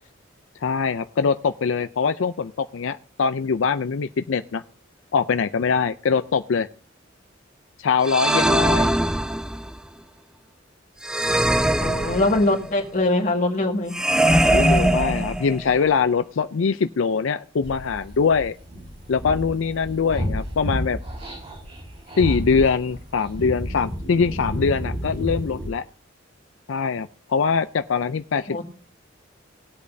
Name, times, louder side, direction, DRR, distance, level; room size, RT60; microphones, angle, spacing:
voice 1, 0.6-4.6 5.1-6.7 7.8-8.9 14.4-18.5 19.1-21.0 22.2-25.8 26.7-28.6, left 5 dB, 85° left, 10 dB, 0.5 m, -23 dB
sound 1, 8.0-9.7 11.0-12.7 13.9-15.8, right 1 dB, 5° right, 0.4 m, -21 dB
voice 2, 11.8-14.0 28.5-28.6, left 2 dB, 40° left, 1 dB, 2.1 m, -22 dB
sound 2, 17.6-25.7, equal, 30° right, 3.9 m, -31 dB
20.0 x 8.3 x 2.7 m, 0.44 s
head